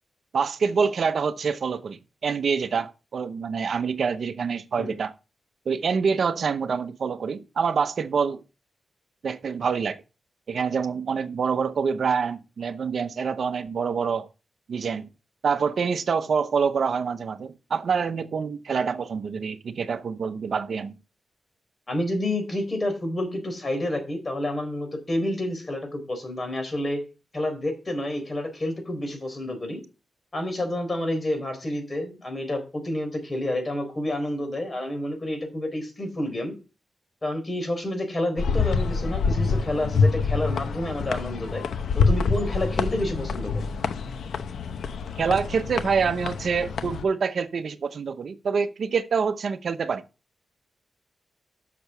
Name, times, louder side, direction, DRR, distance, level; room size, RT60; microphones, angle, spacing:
voice 1, 0.3-5.1 5.7-8.4 9.2-10.0 10.5-14.3 14.7-15.1 15.4-20.9 45.2-50.0, right 6 dB, 70° right, 0.7 m, -26 dB
voice 2, 21.9-27.0 27.3-29.8 30.3-36.5 37.2-41.7 41.9-43.7, left 1 dB, 35° left, 4.2 m, -29 dB
sound 1, 38.4-47.0, left 5 dB, 90° left, 0.8 m, -26 dB
6.8 x 6.7 x 6.8 m
cardioid pair, 75°, 0 cm